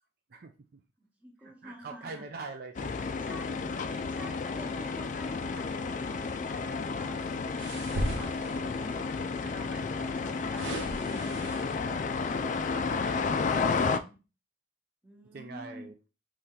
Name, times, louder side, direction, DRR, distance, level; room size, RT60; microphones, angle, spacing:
voice 1, 0.3-0.8 1.4-3.2 3.5-3.6 12.7-12.9 15.3-15.9, right 3 dB, 50° right, 6 dB, 0.4 m, -43 dB
voice 2, 1.2-2.2 2.9-12.0 15.0-15.9, equal, 10° right, 1 dB, 0.9 m, -49 dB
sound 1, 2.8-14.0, left 4 dB, 40° left, 0.3 m, -32 dB
sound 2, 7.6-8.9 9.9-12.0 12.5-12.7, right 1 dB, 65° right, 1.2 m, -37 dB
4.2 x 3.2 x 3.8 m, 0.31 s
head